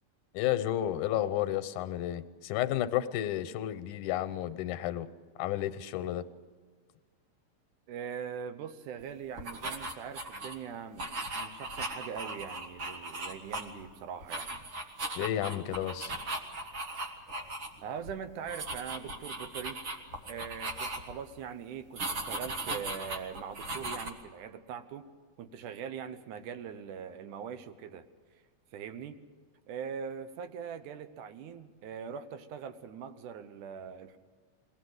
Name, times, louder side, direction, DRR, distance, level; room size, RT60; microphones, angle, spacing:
voice 1, 0.3-5.1 5.4-6.2 15.2-16.1, left 12 dB, 85° left, 11 dB, 2.3 m, -32 dB
voice 2, 7.9-14.6 17.8-19.8 20.3-25.1 25.4-28.1 28.7-29.2 29.7-34.2, right 7 dB, 85° right, 10 dB, 2.4 m, -42 dB
sound 1, 9.3-10.6 11.0-13.9 14.2-17.7 18.0-18.1 18.5-21.2 22.0-24.1, right 2 dB, 45° right, 1.9 m, -38 dB
22.0 x 17.0 x 7.9 m, 1.5 s
omnidirectional pair, 3.5 m